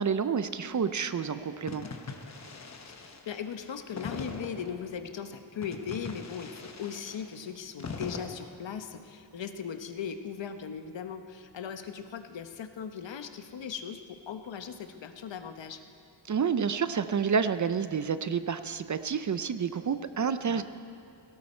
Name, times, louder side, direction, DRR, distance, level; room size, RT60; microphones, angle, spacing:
voice 1, 0.0-1.9 16.2-20.6, right 6 dB, 40° right, 12 dB, 0.5 m, -29 dB
sound 1, 1.7-4.9 5.6-8.3, left 4 dB, 35° left, 1.0 m, -41 dB
voice 2, 2.9-15.8 20.4-20.6, left 7 dB, 75° left, 8 dB, 1.0 m, -38 dB
17.5 x 17.5 x 4.3 m, 2.7 s
wide cardioid pair, 170°, 45 cm